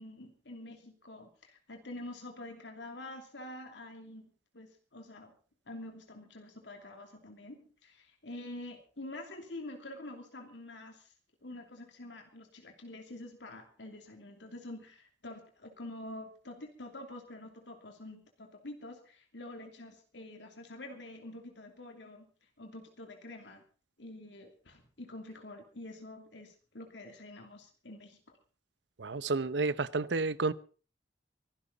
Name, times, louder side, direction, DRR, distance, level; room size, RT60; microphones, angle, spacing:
voice 1, 0.0-5.3 5.7-11.1 11.4-22.3 22.6-23.6 24.0-28.2, left 1 dB, 85° left, 2.9 m, -47 dB
voice 2, 29.0-30.5, right 3 dB, 80° right, 0.8 m, -31 dB
24.0 x 12.0 x 4.0 m
head